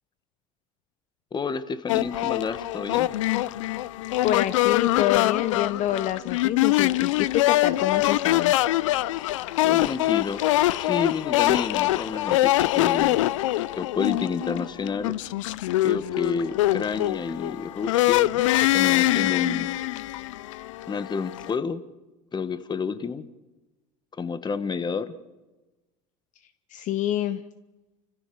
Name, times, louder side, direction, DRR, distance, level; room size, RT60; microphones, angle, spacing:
voice 1, 1.3-3.1 9.6-10.4 10.8-13.3 13.8-15.1 15.8-18.3 18.7-19.8 20.9-21.8 22.3-23.3 24.2-25.1, left 5 dB, 25° left, 13 dB, 1.6 m, -30 dB
sound 1, 1.9-21.5, left 16 dB, 85° left, 0.6 m, -24 dB
voice 2, 4.2-8.5 26.7-27.4, left 12 dB, 50° left, 13 dB, 0.9 m, -27 dB
29.5 x 15.0 x 7.1 m, 1.2 s
hypercardioid pair, 85°, 16 cm